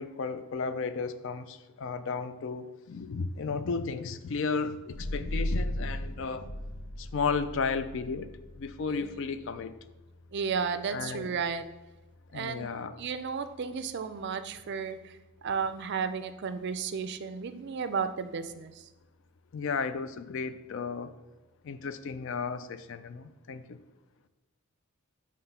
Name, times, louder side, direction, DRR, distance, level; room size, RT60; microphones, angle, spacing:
voice 1, 0.0-6.5 7.0-8.3 8.6-9.7 10.9-11.3 12.3-13.0 19.5-21.1 21.6-23.8, left 5 dB, 55° left, 11 dB, 0.4 m, -34 dB
sound 1, 4.9-16.2, left 1 dB, 85° left, 0.7 m, -39 dB
voice 2, 8.9-9.2 10.3-11.6 12.3-15.2 15.4-18.7, right 6 dB, 50° right, 10 dB, 0.4 m, -33 dB
5.9 x 3.1 x 5.6 m, 1.1 s
head